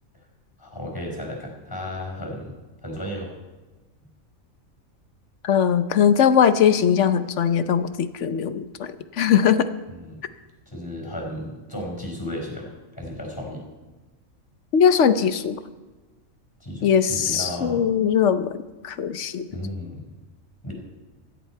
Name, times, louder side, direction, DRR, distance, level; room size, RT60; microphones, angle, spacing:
voice 1, 0.6-2.5 2.8-3.3 9.9-10.2 10.7-13.7 16.6-17.8 19.5-20.1 20.6-20.7, left 1 dB, 15° left, 0 dB, 4.6 m, -34 dB
voice 2, 5.4-8.9 9.2-9.7 14.7-15.6 16.8-18.6 18.8-19.5, left 8 dB, 60° left, 11 dB, 1.1 m, -20 dB
16.5 x 14.0 x 4.6 m, 1.2 s
omnidirectional pair, 1.4 m